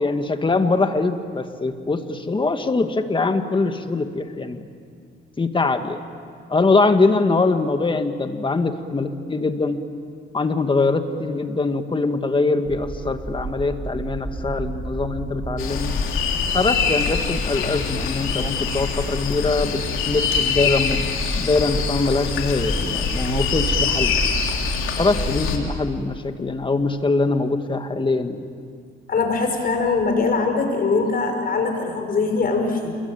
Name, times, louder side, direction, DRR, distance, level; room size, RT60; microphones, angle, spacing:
voice 1, 0.0-4.7 5.4-6.0 6.5-9.8 10.3-15.9 16.5-24.2 25.0-28.4, left 3 dB, 25° left, 7 dB, 2.0 m, -22 dB
sound 1, 12.7-25.8, right 3 dB, 20° right, 4.1 m, -32 dB
sound 2, 15.6-25.6, left 7 dB, 85° left, 3.3 m, -24 dB
voice 2, 29.1-33.0, left 4 dB, 50° left, 4 dB, 5.5 m, -22 dB
28.5 x 22.0 x 9.0 m, 2.1 s
cardioid pair, 90°, 20 cm